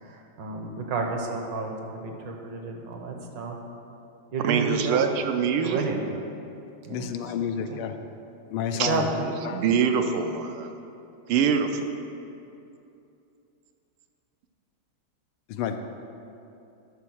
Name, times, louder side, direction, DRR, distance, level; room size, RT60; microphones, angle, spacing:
voice 1, 0.0-3.6 4.3-5.0 5.6-6.0 6.8-7.1 7.4-7.8 8.9-9.3, right 4 dB, 65° right, 2 dB, 1.5 m, -31 dB
voice 2, 4.4-5.9 8.8-8.9 9.2-10.8 11.3-11.8, right 7 dB, 80° right, 6 dB, 1.5 m, -24 dB
voice 3, 6.9-7.9 8.5-9.1 9.4-9.6 15.5-15.8, left 8 dB, 80° left, 7 dB, 1.5 m, -30 dB
11.5 x 4.3 x 6.2 m, 2.7 s
omnidirectional pair, 2.4 m